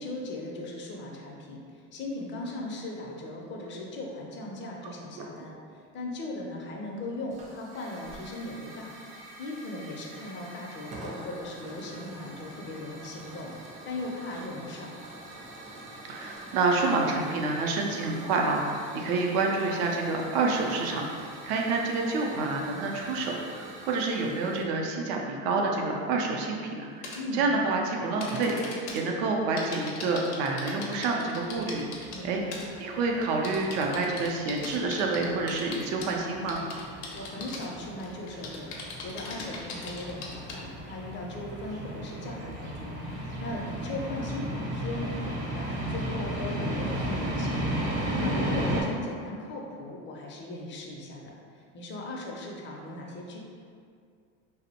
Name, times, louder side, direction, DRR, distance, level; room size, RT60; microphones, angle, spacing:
voice 1, 0.0-8.9 9.4-14.9 27.1-27.5 32.1-32.6 37.1-53.4, left 2 dB, 35° left, -1 dB, 0.5 m, -38 dB
Hiss / Fire, 7.3-24.6, right 1 dB, 25° right, 0.4 m, -45 dB
voice 2, 16.1-32.4 32.8-36.6, right 3 dB, 75° right, 0 dB, 0.5 m, -28 dB
sound 1, 27.0-27.2 28.2-29.0 29.6-32.2 32.5-32.8 33.2-36.1 36.5-37.7 38.0-40.6, left 4 dB, 85° left, 0.6 m, -39 dB
sound 2, 31.4-48.8, right 1 dB, 50° right, 0.8 m, -34 dB
2.5 x 2.0 x 2.7 m, 2.2 s
supercardioid pair, 105°, 32 cm